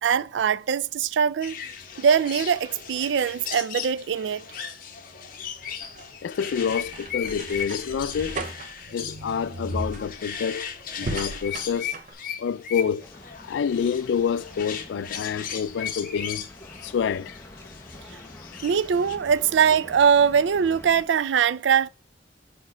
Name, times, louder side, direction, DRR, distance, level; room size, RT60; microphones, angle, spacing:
voice 1, 0.0-1.6 2.0-4.4 18.6-21.9, right 7 dB, 90° right, 0.4 m, -22 dB
sound 1, 1.4-19.2, left 8 dB, 50° left, 1.0 m, -37 dB
sound 2, 5.4-12.1, right 2 dB, 45° right, 0.7 m, -37 dB
voice 2, 6.2-8.4 8.9-10.7 11.0-12.0 12.4-13.1 13.4-16.5 16.8-17.4, left 7 dB, 90° left, 0.3 m, -27 dB
sound 3, 13.0-21.0, left 1 dB, 15° left, 0.7 m, -47 dB
5.3 x 4.2 x 4.4 m
head